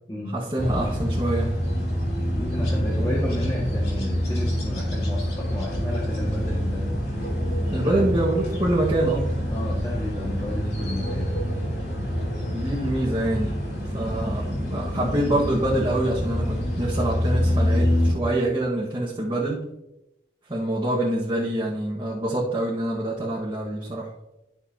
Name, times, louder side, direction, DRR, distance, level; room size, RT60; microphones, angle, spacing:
voice 1, 0.3-1.5 3.0-3.1 7.7-9.3 12.5-13.6 13.9-19.6 20.5-24.1, right 1 dB, 25° right, -7 dB, 1.6 m, -25 dB
sound 1, 0.6-18.1, equal, 60° left, 3.2 m, -26 dB
voice 2, 2.3-7.0 7.8-8.1 9.5-11.3, left 1 dB, 20° left, -6 dB, 1.7 m, -32 dB
13.0 x 6.7 x 2.9 m, 0.91 s
head